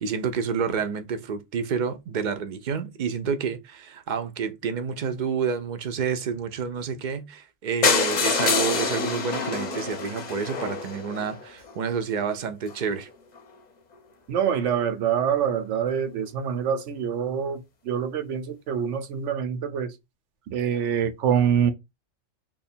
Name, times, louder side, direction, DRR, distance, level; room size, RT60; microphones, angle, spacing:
voice 1, 0.0-13.1, right 6 dB, 55° right, 0.6 m, -29 dB
sound 1, 7.8-11.7 12.4-12.5 12.7-12.8 13.1-13.2 13.4-13.5, left 5 dB, 45° left, 0.7 m, -26 dB
voice 2, 14.3-17.6 17.9-19.9 20.5-21.7, right 8 dB, 85° right, 1.0 m, -25 dB
3.0 x 2.4 x 4.2 m
omnidirectional pair, 1.2 m